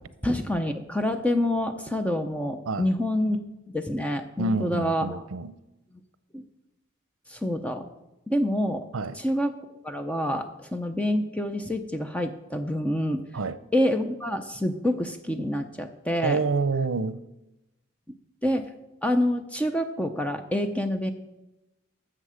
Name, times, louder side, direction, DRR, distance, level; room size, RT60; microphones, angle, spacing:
voice 1, 0.2-3.4 3.7-5.2 6.3-6.4 7.3-7.9 8.3-8.9 9.2-9.5 9.8-13.2 13.7-16.4 18.4-18.7 19.0-21.1, left 1 dB, 5° left, 0.6 m, -27 dB
voice 2, 4.4-5.6 8.9-9.2 13.3-13.6 16.2-17.2, right 3 dB, 80° right, 0.6 m, -27 dB
13.0 x 7.6 x 5.0 m
head